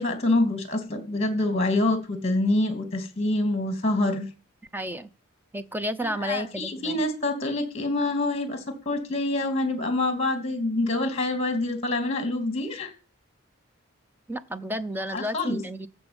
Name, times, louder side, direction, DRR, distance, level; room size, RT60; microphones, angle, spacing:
voice 1, 0.0-4.3 6.0-12.9 15.1-15.6, left 2 dB, 30° left, 2.8 m, -26 dB
voice 2, 4.7-5.1 5.5-7.0 14.3-15.9, equal, 10° right, 0.7 m, -31 dB
14.5 x 5.2 x 8.9 m
head